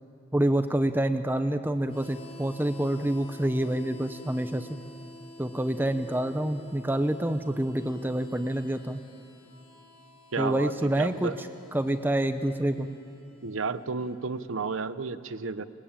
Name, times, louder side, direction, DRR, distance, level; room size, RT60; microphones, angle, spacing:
voice 1, 0.3-4.7 5.4-9.0 10.4-11.5 11.7-12.9, right 1 dB, 10° right, 9 dB, 0.7 m, -27 dB
Harmonica, 1.8-14.5, left 1 dB, 35° left, 4.9 m, -50 dB
voice 2, 10.3-11.4 13.4-15.7, right 4 dB, 85° right, 13 dB, 0.8 m, -32 dB
24.0 x 21.0 x 8.8 m, 2.6 s
head